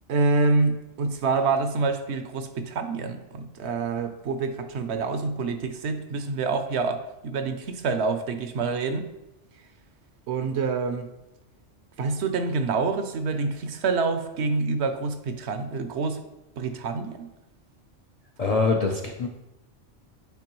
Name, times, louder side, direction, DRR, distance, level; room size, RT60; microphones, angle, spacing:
voice 1, 0.1-9.1 10.3-11.1 12.0-16.2 16.6-17.3, right 4 dB, 70° right, 9 dB, 0.9 m, -27 dB
voice 2, 18.4-19.3, left 4 dB, 50° left, 1 dB, 0.4 m, -24 dB
9.4 x 4.5 x 3.0 m, 0.98 s
omnidirectional pair, 1.2 m